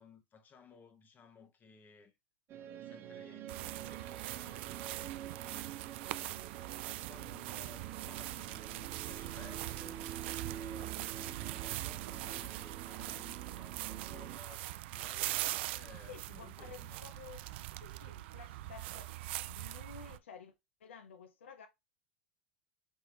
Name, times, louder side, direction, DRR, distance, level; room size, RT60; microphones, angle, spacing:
voice 1, 0.0-2.2 2.5-5.8 6.1-6.5 6.9-10.1 10.5-17.1, left 5 dB, 30° left, 1.2 m, -59 dB
sound 1, 2.5-14.4, right 10 dB, 40° right, 0.9 m, -47 dB
sound 2, 3.5-20.2, right 16 dB, 65° right, 0.3 m, -42 dB
voice 2, 16.1-17.5 17.8-19.1 19.4-20.5 20.8-21.7, left 7 dB, 85° left, 0.7 m, -52 dB
5.5 x 3.1 x 3.0 m
hypercardioid pair, 100°, 6 cm